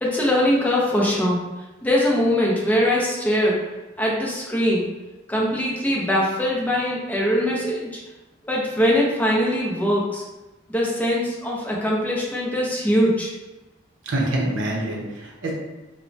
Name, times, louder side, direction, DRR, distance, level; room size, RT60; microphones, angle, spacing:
voice 1, 0.0-1.4 1.8-3.6 4.0-4.9 5.3-8.0 8.4-10.2 10.7-13.3, equal, 10° left, -4 dB, 0.4 m, -22 dB
voice 2, 14.0-15.5, right 1 dB, 70° right, -2 dB, 0.6 m, -25 dB
3.0 x 2.1 x 2.6 m, 1.1 s
head